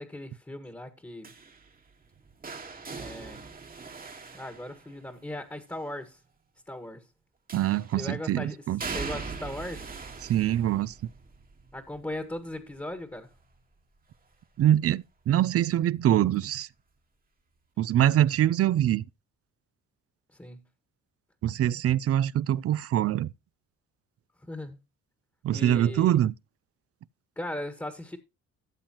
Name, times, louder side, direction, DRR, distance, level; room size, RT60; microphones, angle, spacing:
voice 1, 0.0-1.3 2.9-3.5 4.3-6.2 6.7-7.0 7.9-8.6 8.9-9.9 11.7-13.3 20.4-20.6 24.4-24.8 25.5-26.1 27.3-28.2, left 1 dB, 10° left, 1.5 m, -38 dB
sound 1, 1.2-5.3 7.5-8.1 8.8-14.6 15.0-15.4 16.6-16.7, right 4 dB, 30° right, 1.5 m, -41 dB
voice 2, 7.5-8.8 10.2-10.9 14.6-16.7 17.8-19.0 21.4-23.3 25.4-26.3, right 11 dB, 50° right, 0.5 m, -24 dB
13.0 x 7.4 x 2.9 m
cardioid pair, 90°, 30 cm